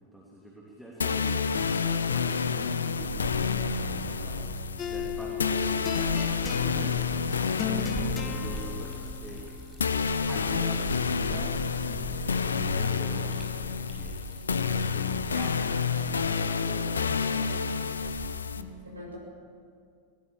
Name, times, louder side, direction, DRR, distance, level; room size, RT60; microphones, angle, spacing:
voice 1, 0.0-4.4 4.9-9.5 10.3-11.6 11.8-14.3 14.7-17.9, right 1 dB, ahead, -4 dB, 3.1 m, -45 dB
sound 1, 1.0-18.6, left 5 dB, 70° left, 0.9 m, -29 dB
Liquid, 2.5-18.6, right 4 dB, 20° right, 6.0 m, -43 dB
sound 2, 4.8-11.5, left 7 dB, 25° left, 1.3 m, -38 dB
voice 2, 7.8-8.3 18.5-19.2, right 2 dB, 80° right, -1 dB, 7.3 m, -39 dB
20.5 x 19.5 x 7.2 m, 2.4 s
figure-of-eight pair, 90°, 0 cm